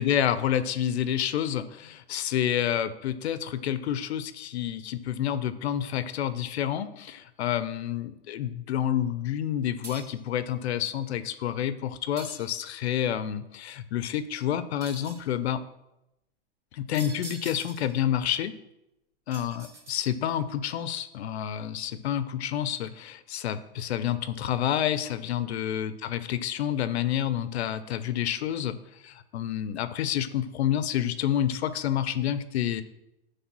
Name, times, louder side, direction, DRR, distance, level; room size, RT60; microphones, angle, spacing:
voice 1, 0.0-15.6 16.7-18.5 19.3-28.8 29.0-32.8, left 10 dB, 75° left, 13 dB, 0.6 m, -29 dB
sound 1, 9.8-10.3 12.2-12.9 14.8-15.3 16.9-18.0 19.3-20.4, right 2 dB, 10° right, 0.6 m, -44 dB
9.4 x 3.4 x 6.0 m, 0.89 s
supercardioid pair, 160°, 33 cm